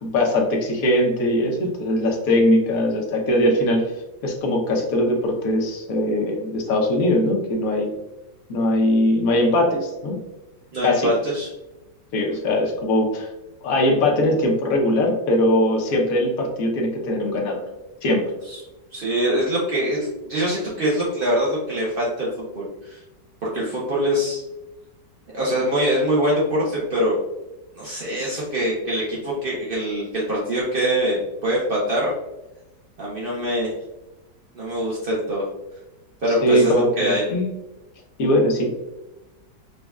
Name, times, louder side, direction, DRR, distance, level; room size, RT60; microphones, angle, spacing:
voice 1, 0.0-3.9 4.2-7.9 8.5-10.2 10.8-11.1 12.1-13.3 13.6-17.6 18.0-18.3 36.3-37.5 38.2-38.7, left 1 dB, 60° left, 0 dB, 1.1 m, -21 dB
voice 2, 10.7-11.5 12.3-12.4 18.5-18.6 18.9-23.0 23.4-24.4 25.3-27.2 27.8-32.1 33.0-33.7 34.5-35.5 36.2-37.3, equal, 70° right, -6 dB, 0.5 m, -23 dB
5.1 x 2.3 x 2.3 m, 1.0 s
omnidirectional pair, 1.9 m